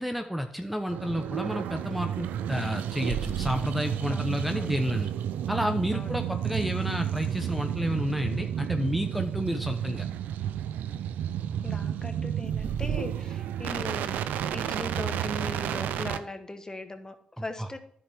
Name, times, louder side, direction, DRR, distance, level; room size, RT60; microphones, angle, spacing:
voice 1, 0.0-5.1 5.5-10.1 17.6-17.7, equal, 5° right, 6 dB, 0.9 m, -30 dB
sound 1, 0.9-16.2, right 9 dB, 85° right, 0.5 m, -31 dB
voice 2, 4.1-4.8 5.9-6.2 11.6-14.2 14.5-17.8, left 2 dB, 25° left, 8 dB, 1.3 m, -39 dB
10.0 x 7.3 x 3.6 m, 0.63 s
supercardioid pair, 50°, 3 cm